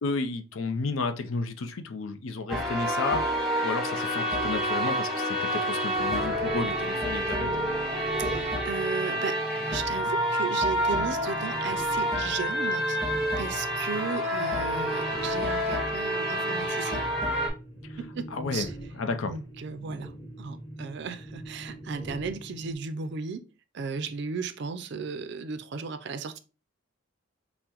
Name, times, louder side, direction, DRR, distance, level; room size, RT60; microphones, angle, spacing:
voice 1, 0.0-7.5 17.9-18.0 18.3-18.7 18.9-19.4, left 3 dB, 75° left, 0.5 m, -32 dB
sound 1, 2.5-17.5, equal, ahead, 1.0 m, -28 dB
sound 2, 5.9-22.7, right 1 dB, 25° left, 1.8 m, -41 dB
voice 2, 8.2-9.4 9.7-13.0 13.4-17.0 18.0-18.7 19.2-23.5 23.7-26.4, right 5 dB, 55° right, 0.4 m, -35 dB
5.6 x 2.1 x 2.9 m
head